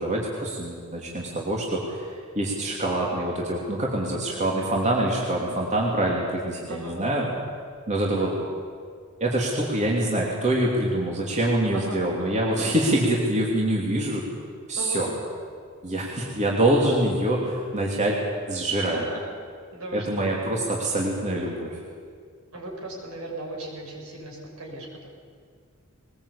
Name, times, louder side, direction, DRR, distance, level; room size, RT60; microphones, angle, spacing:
voice 1, 0.0-2.1 2.3-7.3 7.9-8.3 9.2-14.2 14.7-15.1 15.8-18.2 18.5-19.0 19.9-21.8, right 1 dB, 35° right, -2 dB, 3.1 m, -25 dB
voice 2, 6.7-7.3 8.2-8.3 11.7-12.4 14.7-15.0 18.8-19.3 19.7-20.3 22.5-24.9, right 1 dB, 70° right, -1 dB, 6.7 m, -37 dB
21.5 x 20.5 x 8.6 m, 2.1 s
head